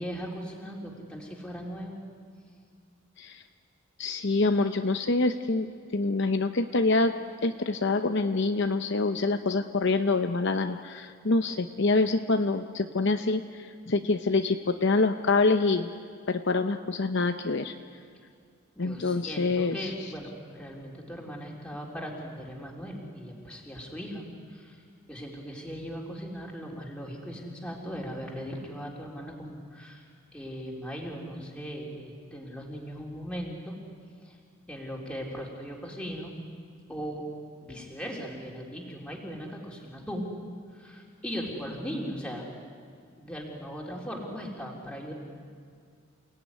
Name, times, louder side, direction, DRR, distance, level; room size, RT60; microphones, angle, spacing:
voice 1, 0.0-2.0 18.8-24.2 24.5-24.8 25.1-30.0 30.3-33.8 34.2-34.4 34.7-36.4 36.9-37.2 37.6-40.3 40.7-42.4 43.2-45.1, equal, 5° left, -2 dB, 3.7 m, -38 dB
voice 2, 4.0-7.1 7.4-15.9 16.3-17.7 18.8-19.9, left 3 dB, 55° left, 7 dB, 0.8 m, -26 dB
29.0 x 17.5 x 9.7 m, 2.2 s
head